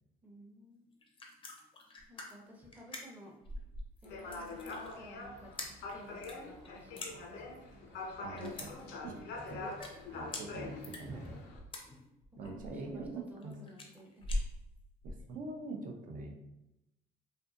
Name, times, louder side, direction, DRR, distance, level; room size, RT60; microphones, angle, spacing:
voice 1, 0.2-0.8 2.1-3.3 4.0-9.7 11.1-11.6 12.4-14.2, equal, 10° right, -3 dB, 0.6 m, -53 dB
sound 1, 0.9-15.3, left 1 dB, 30° left, 0.5 m, -44 dB
sound 2, 4.0-11.6, left 3 dB, 80° left, 0.5 m, -44 dB
voice 2, 8.2-8.7 9.0-9.1 9.5-9.6 10.1-11.2 12.4-13.6 15.0-16.4, right 3 dB, 55° right, 2 dB, 0.6 m, -43 dB
2.6 x 2.6 x 2.4 m, 0.90 s
cardioid pair, 110°, 17 cm